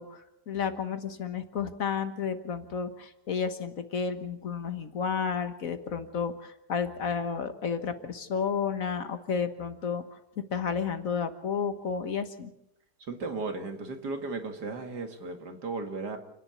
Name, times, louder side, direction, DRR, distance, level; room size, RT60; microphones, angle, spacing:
voice 1, 0.0-12.5, left 6 dB, 55° left, 9 dB, 1.7 m, -32 dB
voice 2, 13.0-16.2, right 3 dB, 80° right, 6 dB, 2.7 m, -35 dB
29.5 x 10.5 x 8.3 m, 0.83 s
omnidirectional pair, 1.7 m